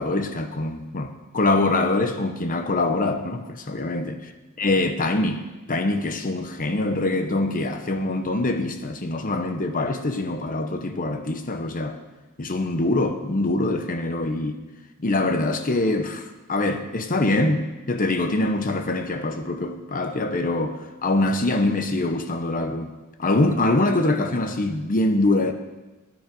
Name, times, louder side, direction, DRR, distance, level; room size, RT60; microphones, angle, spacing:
voice 1, 0.0-4.2 4.6-5.4 5.7-12.0 12.4-14.6 15.0-22.9 23.2-25.5, left 2 dB, 40° left, 0.9 m, -24 dB
16.5 x 9.4 x 5.3 m
head